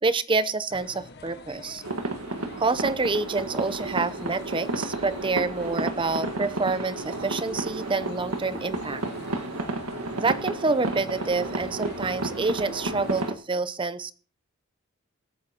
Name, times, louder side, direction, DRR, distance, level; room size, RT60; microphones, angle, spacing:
voice 1, 0.0-1.8 2.6-9.0 10.2-14.1, right 3 dB, 20° right, 14 dB, 0.7 m, -27 dB
sound 1, 0.7-13.3, left 3 dB, 50° left, 1.4 m, -46 dB
sound 2, 1.8-13.3, right 2 dB, 80° right, 1.6 m, -32 dB
24.0 x 9.3 x 2.9 m, 0.38 s
head